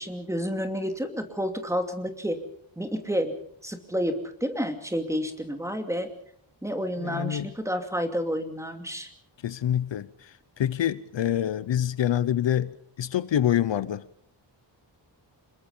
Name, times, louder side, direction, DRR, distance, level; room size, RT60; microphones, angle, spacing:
voice 1, 0.0-2.4 2.8-3.3 3.6-6.1 6.6-9.1, equal, 5° right, 2.7 m, -30 dB
voice 2, 7.0-7.5 9.4-14.0, left 10 dB, 70° left, 0.8 m, -26 dB
26.5 x 21.5 x 5.5 m
wide cardioid pair, 145°, 46 cm